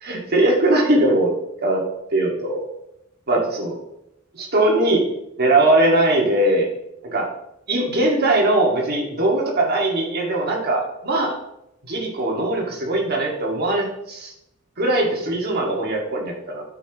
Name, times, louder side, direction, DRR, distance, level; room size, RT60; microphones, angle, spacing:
voice 1, 0.0-1.4 1.6-1.9 2.1-2.7 3.3-3.8 4.3-5.0 5.4-6.7 7.0-7.3 7.7-11.3 11.9-14.3 14.8-16.6, right 1 dB, 50° right, -1 dB, 2.1 m, -20 dB
12.5 x 5.9 x 3.1 m, 0.81 s
head